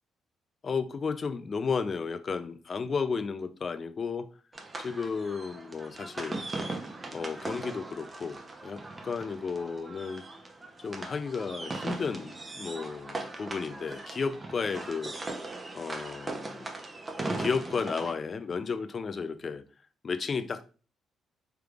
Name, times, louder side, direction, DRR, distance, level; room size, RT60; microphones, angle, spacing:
voice 1, 0.6-4.3 4.8-6.4 7.1-10.2 10.8-15.1 15.7-16.7 17.4-19.6 20.0-20.7, left 5 dB, 40° left, 0.3 m, -33 dB
sound 1, 4.5-18.1, right 2 dB, 25° right, 0.6 m, -39 dB
3.3 x 3.3 x 2.4 m
cardioid pair, 90°, 0 cm